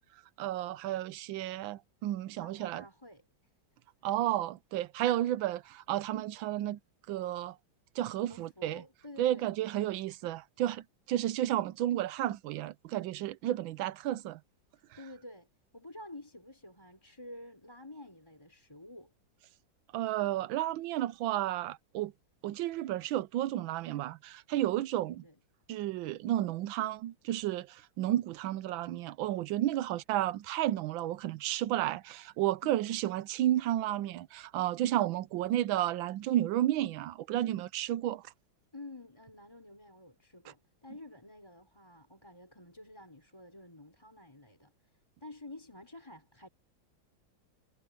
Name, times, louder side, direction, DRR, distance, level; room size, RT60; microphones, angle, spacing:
voice 1, 0.4-2.8 4.0-6.8 7.1-7.6 8.0-8.8 9.2-14.4 19.9-22.1 22.4-25.2 25.7-38.2, right 13 dB, 75° right, 1.4 m, -32 dB
voice 2, 2.4-3.3 8.3-9.5 14.8-15.5 15.7-19.1 24.9-25.4 29.7-29.9 32.6-32.8 38.7-46.5, left 1 dB, 10° left, 4.8 m, -50 dB
omnidirectional pair, 2.2 m